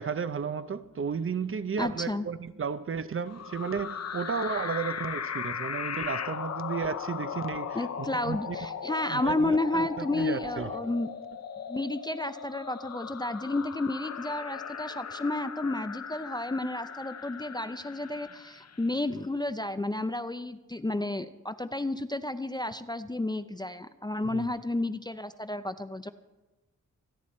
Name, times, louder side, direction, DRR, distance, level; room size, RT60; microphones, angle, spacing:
voice 1, 0.0-8.6 9.1-10.7 24.3-24.5, right 6 dB, 45° right, 0.6 m, -33 dB
voice 2, 1.8-2.3 7.7-11.1 11.7-26.1, left 2 dB, 15° left, 0.4 m, -31 dB
sound 1, 3.3-18.9, left 7 dB, 55° left, 0.7 m, -38 dB
26.5 x 10.0 x 4.3 m
wide cardioid pair, 150°, 31 cm